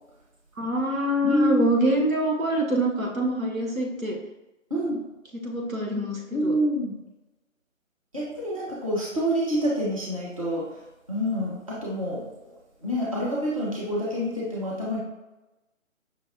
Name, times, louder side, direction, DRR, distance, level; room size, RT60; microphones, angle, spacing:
voice 1, 0.6-4.2 5.4-6.5, right 1 dB, 85° right, -1 dB, 1.1 m, -25 dB
voice 2, 1.2-1.6 4.7-5.0 6.3-6.9 8.1-10.6 11.1-12.3 12.8-15.0, equal, 25° right, -6 dB, 0.7 m, -27 dB
5.6 x 2.2 x 2.6 m, 1.0 s
figure-of-eight pair, 150°, 40 cm